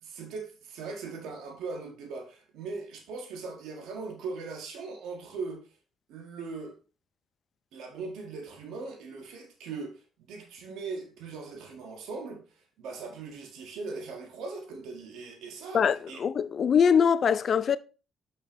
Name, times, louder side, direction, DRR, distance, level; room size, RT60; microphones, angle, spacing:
voice 1, 0.0-5.7 6.1-6.7 7.7-12.4 12.8-16.2, right 4 dB, 80° right, 1.5 m, -39 dB
voice 2, 15.7-17.8, left 7 dB, 50° left, 0.5 m, -23 dB
6.4 x 5.6 x 3.0 m
supercardioid pair, 70°, 0 cm